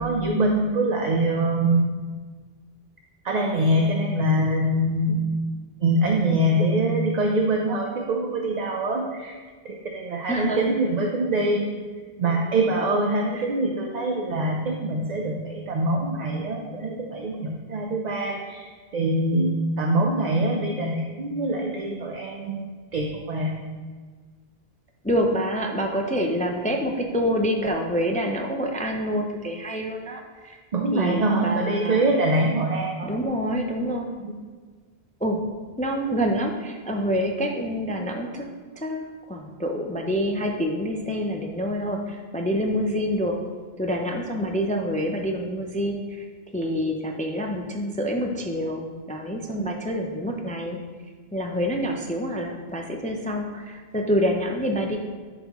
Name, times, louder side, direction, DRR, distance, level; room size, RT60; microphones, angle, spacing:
voice 1, 0.0-1.9 3.2-5.3 5.8-9.4 9.6-11.7 12.2-18.7 18.9-22.6 22.9-23.5 30.7-33.1 34.2-34.3, right 1 dB, 50° right, 1 dB, 0.7 m, -24 dB
voice 2, 10.3-10.8 13.3-13.5 25.0-30.6 30.9-32.0 33.0-34.1 35.2-35.4 35.8-38.5 38.8-43.4 43.8-46.3 46.5-50.8 51.3-55.0, equal, 15° left, 2 dB, 0.3 m, -27 dB
10.5 x 4.1 x 3.0 m, 1.5 s
omnidirectional pair, 1.0 m